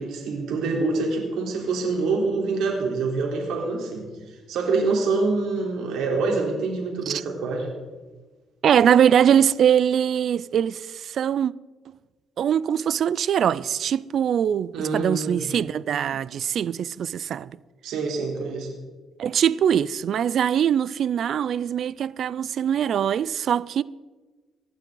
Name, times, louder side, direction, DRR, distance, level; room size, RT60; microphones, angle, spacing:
voice 1, 0.0-7.7 14.7-15.5 17.8-18.7, right 3 dB, 85° right, 3.7 m, -26 dB
voice 2, 8.6-11.5 12.4-17.5 19.2-23.8, right 9 dB, 65° right, 0.4 m, -22 dB
23.0 x 12.0 x 3.9 m
cardioid pair, 90°, 0 cm